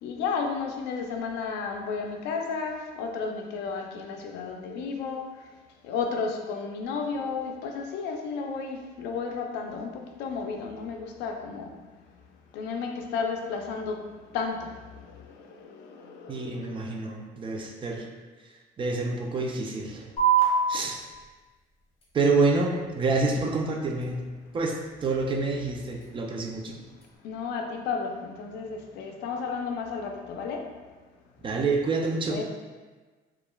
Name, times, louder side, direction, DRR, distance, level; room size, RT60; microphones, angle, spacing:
voice 1, 0.0-5.3 5.8-11.7 12.5-17.0 27.2-30.7 32.3-32.4, left 5 dB, 85° left, 3 dB, 0.4 m, -33 dB
voice 2, 16.3-18.1 18.8-20.1 20.7-21.0 22.1-24.3 24.5-26.8 31.4-32.4, right 3 dB, 30° right, 1 dB, 0.4 m, -27 dB
sound 1, 20.2-27.2, right 6 dB, 35° left, 0.9 m, -31 dB
3.0 x 2.3 x 2.2 m, 1.3 s
cardioid pair, 110°, 17 cm